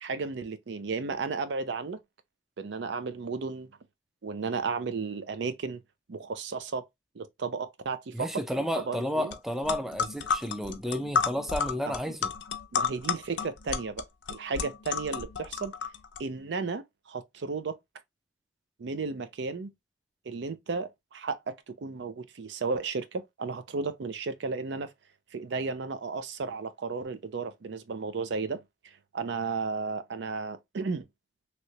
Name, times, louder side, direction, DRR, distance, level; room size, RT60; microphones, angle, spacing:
voice 1, 0.0-2.0 2.6-3.7 4.2-5.8 6.1-6.9 7.2-8.3 8.8-9.3 11.9-12.2 12.7-14.0 14.3-15.7 16.2-17.8 18.8-19.7 20.3-24.9 25.3-28.6 29.1-31.0, right 4 dB, 70° right, 0.5 m, -34 dB
voice 2, 8.1-12.3, equal, ahead, 0.4 m, -32 dB
sound 1, 9.3-9.4 9.6-16.2, left 6 dB, 80° left, 0.5 m, -31 dB
3.1 x 2.8 x 2.7 m
head